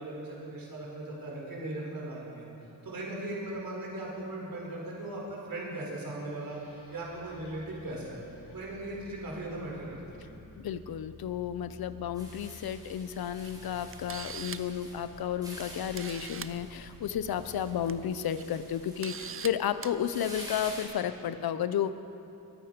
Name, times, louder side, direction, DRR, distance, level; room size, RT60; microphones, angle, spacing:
voice 1, 0.0-8.2 8.5-10.3, right 1 dB, 65° right, -3 dB, 4.1 m, -38 dB
sound 1, 6.0-18.0, left 2 dB, 55° left, 3.2 m, -53 dB
voice 2, 10.6-21.9, left 9 dB, 75° left, 13 dB, 0.6 m, -32 dB
sound 2, 12.1-20.9, equal, 10° right, 3.8 m, -48 dB
Camera, 13.4-13.5 13.9-14.8 15.6-15.7 15.9-16.5 17.7-17.9 18.4-18.5 19.0-19.5 19.8-19.9, right 7 dB, 35° right, 0.5 m, -40 dB
22.5 x 8.8 x 5.1 m, 2.9 s
cardioid pair, 90°, 37 cm